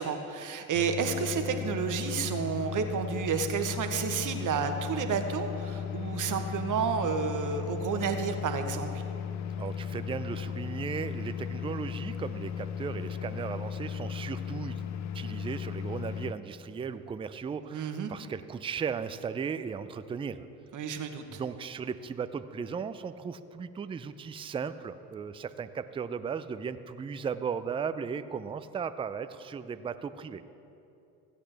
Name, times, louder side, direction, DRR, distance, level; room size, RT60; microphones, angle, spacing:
voice 1, 0.0-9.0 17.7-18.1 20.7-21.4, right 6 dB, 50° right, 7 dB, 1.1 m, -31 dB
sound 1, 0.7-16.3, left 8 dB, 45° left, 0.5 m, -36 dB
voice 2, 9.6-14.8 15.1-20.5 21.3-30.4, right 6 dB, 15° right, 12 dB, 0.3 m, -36 dB
15.5 x 8.3 x 3.4 m, 2.8 s
supercardioid pair, 70°, 39 cm